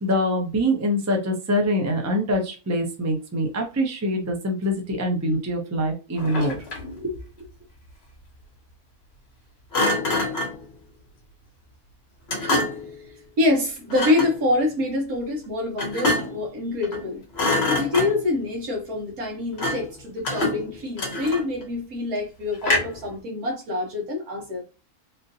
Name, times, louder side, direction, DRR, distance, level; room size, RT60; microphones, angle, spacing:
voice 1, 0.0-6.6 7.0-7.1, equal, 25° right, 0.3 m, -24 dB
Thump thud, 6.2-7.0 9.7-10.6 12.3-12.9 13.9-14.4 15.8-16.5 16.8-17.1 17.3-18.4 19.6-19.9 20.2-21.6 22.6-23.1, left 2 dB, 45° left, 1.2 m, -25 dB
voice 2, 13.4-17.2 17.7-24.6, left 2 dB, 70° right, 1.7 m, -26 dB
3.6 x 2.6 x 2.7 m
omnidirectional pair, 1.6 m